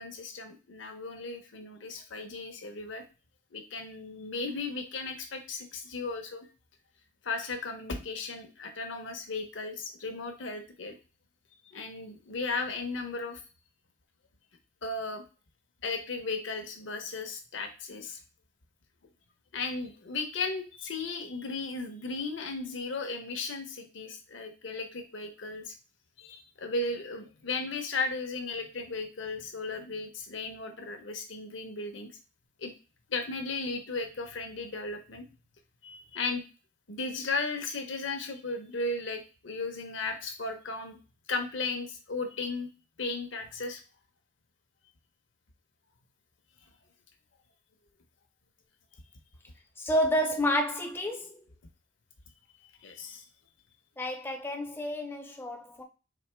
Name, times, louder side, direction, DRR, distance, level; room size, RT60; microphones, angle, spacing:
voice 1, 0.0-3.0 3.5-6.5 7.2-11.0 11.7-13.4 14.8-15.2 15.8-18.2 19.5-25.7 26.2-32.1 32.6-32.7 33.1-35.3 35.8-36.4 36.9-41.0 41.3-42.7 43.0-43.8 52.8-53.2, left 3 dB, 70° left, 0.8 m, -35 dB
voice 2, 49.8-51.4 54.0-55.8, equal, 10° left, 0.4 m, -29 dB
4.2 x 2.8 x 3.3 m
head